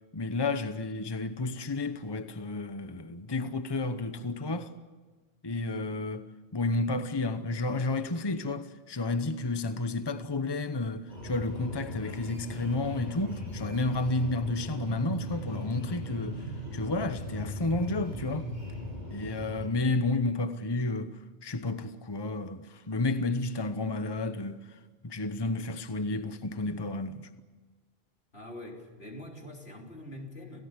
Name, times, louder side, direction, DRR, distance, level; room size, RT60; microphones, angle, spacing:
voice 1, 0.1-4.7 5.4-6.3 6.5-16.5 16.7-18.5 19.1-27.3, left 2 dB, 25° left, 1.0 m, -31 dB
sound 1, 11.1-19.7, left 1 dB, 45° left, 8.2 m, -38 dB
voice 2, 28.3-30.6, left 1 dB, 80° left, 4.0 m, -44 dB
28.5 x 17.5 x 9.8 m
omnidirectional pair, 1.1 m